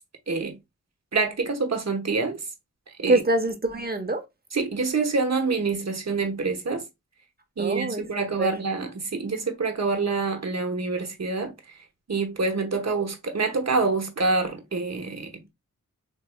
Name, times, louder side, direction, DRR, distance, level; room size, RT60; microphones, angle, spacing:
voice 1, 0.3-0.6 1.1-2.4 3.0-3.2 4.5-6.8 7.6-11.5 12.1-15.4, right 4 dB, 55° right, 1.0 m, -26 dB
voice 2, 3.1-4.2 7.6-8.0 8.4-8.5, right 2 dB, 30° right, 0.9 m, -24 dB
4.0 x 3.1 x 2.2 m
cardioid pair, 45°, 32 cm